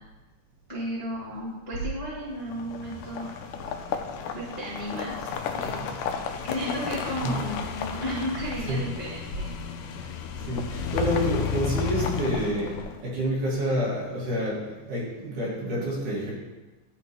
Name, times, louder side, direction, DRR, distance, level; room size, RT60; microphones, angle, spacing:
voice 1, 0.7-3.3 4.3-5.3 5.5-5.9 6.4-9.5, equal, 15° left, -9 dB, 1.3 m, -34 dB
sound 1, 2.4-13.2, left 7 dB, 85° left, 2.1 m, -32 dB
voice 2, 10.4-16.3, right 1 dB, 75° right, -6 dB, 3.5 m, -29 dB
12.0 x 4.2 x 3.0 m, 1.2 s
omnidirectional pair, 3.6 m